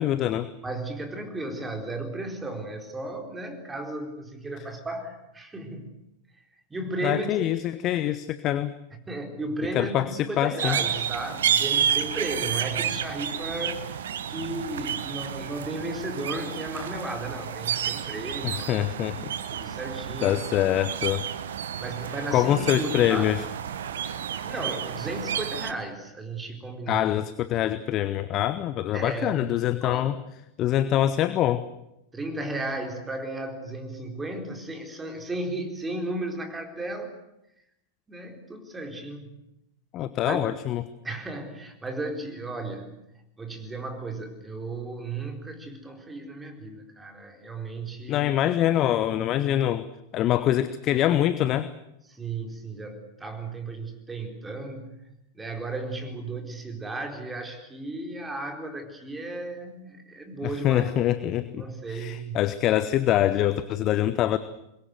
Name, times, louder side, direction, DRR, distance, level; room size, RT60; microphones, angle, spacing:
voice 1, 0.0-0.5 7.0-8.7 9.7-10.8 18.4-19.2 20.2-21.3 22.3-23.4 26.9-30.2 30.6-31.6 39.9-40.8 48.1-49.8 50.1-51.7 60.4-61.6 61.9-64.4, left 12 dB, 35° left, 14 dB, 1.0 m, -24 dB
voice 2, 0.6-5.9 6.7-7.5 9.1-18.7 19.5-20.4 21.8-23.4 24.4-27.1 28.9-30.1 32.1-37.1 38.1-39.4 40.3-40.5 41.0-43.0 43.4-48.3 52.1-55.1 55.3-61.0 61.6-62.4, right 2 dB, 10° right, 4 dB, 4.3 m, -34 dB
sound 1, 10.6-25.7, right 8 dB, 60° right, 1.3 m, -30 dB
24.5 x 21.5 x 8.0 m, 0.86 s
figure-of-eight pair, 90°, 0 cm